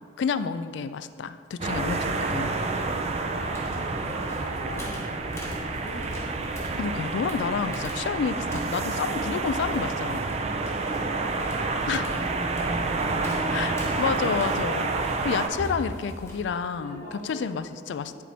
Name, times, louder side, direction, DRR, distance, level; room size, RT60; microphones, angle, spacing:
voice 1, 0.2-2.5 6.8-10.2 11.9-12.1 13.5-18.2, left 5 dB, 65° left, 12 dB, 0.3 m, -30 dB
sound 1, 1.6-15.5, right 3 dB, 35° right, 0.4 m, -29 dB
voice 2, 3.1-6.4 10.4-13.7 16.7-17.6 18.0-18.2, equal, 40° left, -7 dB, 1.3 m, -43 dB
sound 2, 3.5-16.4, equal, 15° left, 1.0 m, -42 dB
10.5 x 4.4 x 4.2 m, 2.1 s
head